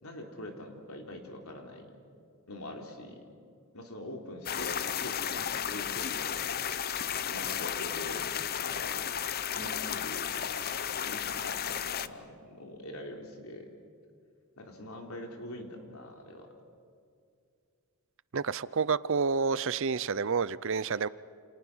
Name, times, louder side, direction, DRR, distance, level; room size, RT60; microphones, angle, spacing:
voice 1, 0.0-1.9 2.5-3.2 3.7-6.4 7.3-8.3 8.6-8.9 9.5-10.6 11.0-13.7 14.6-16.5, left 1 dB, 75° left, 2 dB, 3.8 m, -43 dB
sound 1, 4.4-12.1, left 9 dB, 45° left, 0.7 m, -33 dB
voice 2, 18.3-21.1, right 5 dB, 60° right, 18 dB, 0.6 m, -29 dB
29.0 x 29.0 x 6.2 m, 2.3 s
head